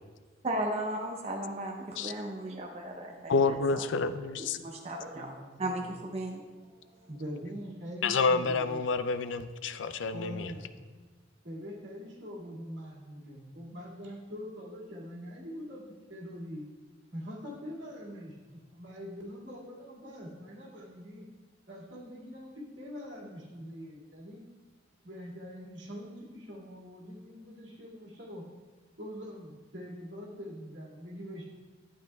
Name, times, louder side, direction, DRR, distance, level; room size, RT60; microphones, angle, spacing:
voice 1, 0.4-3.9 4.4-5.3 5.6-6.4, right 1 dB, 35° right, 1 dB, 0.7 m, -36 dB
voice 2, 3.3-4.6 8.0-10.5, left 4 dB, 70° left, 12 dB, 0.4 m, -28 dB
voice 3, 5.1-5.8 7.1-8.9 10.1-10.7 11.4-15.8 16.1-16.7 17.1-21.2 21.7-24.4 25.0-28.4 29.0-31.5, equal, 70° right, -4 dB, 2.2 m, -43 dB
12.0 x 8.8 x 2.3 m, 1.4 s
head